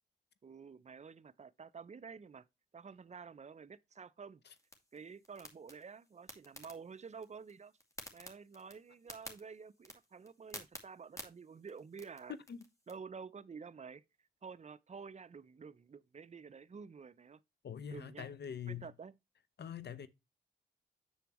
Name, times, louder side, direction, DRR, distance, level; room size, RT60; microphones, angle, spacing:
voice 1, 0.4-2.5 2.7-4.4 4.9-7.7 8.1-12.4 12.9-14.0 14.4-17.4 17.9-18.3 18.7-19.2, right 5 dB, 35° right, 0.6 m, -50 dB
sound 1, 4.5-12.9, left 1 dB, 15° left, 2.3 m, -54 dB
voice 2, 17.6-18.9 19.6-20.1, left 8 dB, 60° left, 0.9 m, -43 dB
7.1 x 6.8 x 3.0 m
supercardioid pair, 40°, 20 cm